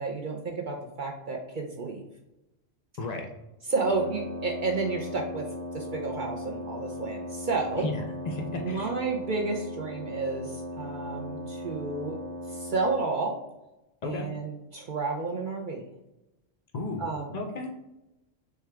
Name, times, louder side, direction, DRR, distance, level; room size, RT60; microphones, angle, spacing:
voice 1, 0.0-2.0 3.7-5.5 5.7-7.9 8.6-12.2 12.5-13.4 14.0-15.8 17.0-17.3, right 3 dB, 55° right, 0 dB, 0.6 m, -31 dB
voice 2, 3.0-3.3 7.8-8.9 14.0-14.3 16.7-17.7, left 2 dB, 55° left, 3 dB, 0.4 m, -34 dB
Wind instrument woodwind instrument, 3.7-13.1, left 1 dB, 75° right, 1.2 m, -38 dB
6.5 x 2.3 x 3.3 m, 0.95 s
omnidirectional pair, 1.3 m